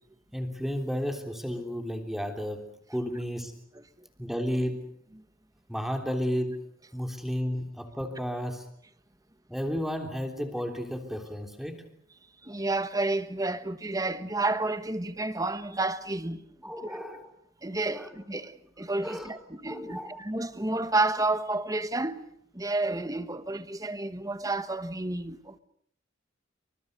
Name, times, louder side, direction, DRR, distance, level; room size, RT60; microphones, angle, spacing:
voice 1, 0.3-3.5 4.2-4.9 5.7-6.6 6.9-8.7 9.5-11.9 16.6-17.3 17.9-18.1 19.0-19.4 19.6-20.2, equal, ahead, 3.3 m, -33 dB
voice 2, 12.4-16.7 17.6-22.2 22.5-25.6, right 2 dB, 20° right, 1.3 m, -30 dB
28.5 x 25.0 x 6.7 m
head